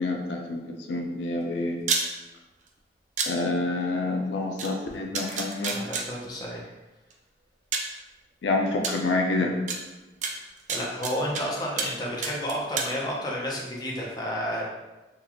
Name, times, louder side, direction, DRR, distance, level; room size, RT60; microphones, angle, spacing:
voice 1, 0.0-1.8 3.2-5.8 8.4-9.5, left 2 dB, 85° left, 1 dB, 0.4 m, -27 dB
sound 1, 1.8-2.0 3.2-3.3 4.6-4.7 5.1-6.0 7.1-7.2 7.7-7.9 8.8-8.9 9.7-9.8 10.2-11.4 11.8-12.0 12.2-12.9, right 5 dB, 45° right, 0.4 m, -28 dB
voice 2, 5.7-6.6 10.7-14.6, equal, 25° left, -3 dB, 0.6 m, -31 dB
3.7 x 2.2 x 2.9 m, 1.1 s
head